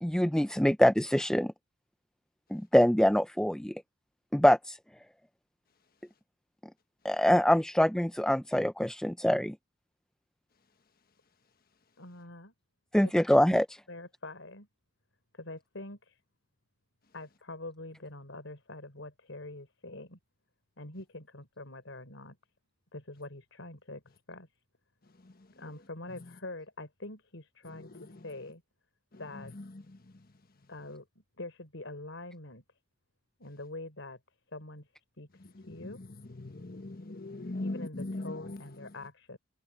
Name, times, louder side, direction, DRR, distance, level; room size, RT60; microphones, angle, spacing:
voice 1, 0.0-1.5 2.5-3.7 4.3-4.8 7.0-9.5 12.9-13.7, equal, 5° left, 0.5 m, -24 dB
voice 2, 12.0-12.5 13.0-13.1 13.5-13.6 13.9-14.7 15.3-16.2 17.1-20.2 20.8-22.4 22.9-24.0 24.3-24.5 25.6-28.6 29.2-29.5 30.7-32.6 33.4-34.2 34.5-34.9 35.2-35.3 35.7-36.0 37.6-39.4, left 2 dB, 80° left, 4.2 m, -44 dB
voice 3, 36.4-38.6, left 2 dB, 50° left, 1.4 m, -39 dB
head